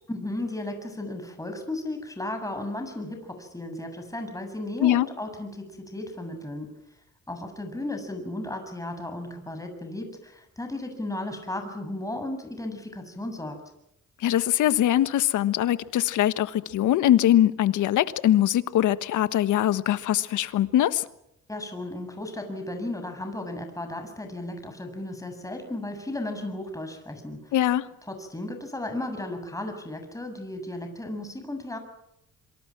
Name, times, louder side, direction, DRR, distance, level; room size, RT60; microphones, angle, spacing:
voice 1, 0.1-6.7 7.3-13.6 21.5-27.5 28.1-31.8, left 1 dB, 10° left, 7.4 m, -35 dB
voice 2, 14.2-21.0 27.5-27.9, left 12 dB, 80° left, 1.4 m, -22 dB
27.0 x 24.5 x 6.1 m
cardioid pair, 90°, 30 cm